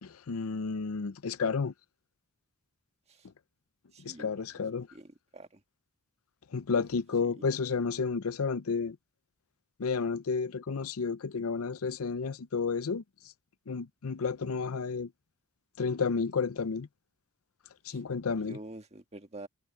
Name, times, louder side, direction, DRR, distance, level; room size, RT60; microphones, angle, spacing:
voice 1, 0.0-1.7 4.0-4.9 6.5-9.0 9.8-13.0 13.7-15.1 15.8-16.9 17.9-18.6, left 5 dB, 85° left, 0.6 m, -31 dB
voice 2, 3.9-4.7 4.9-5.6 6.7-6.8 7.2-7.3 17.9-18.0 18.4-19.5, right 2 dB, 30° right, 1.6 m, -47 dB
head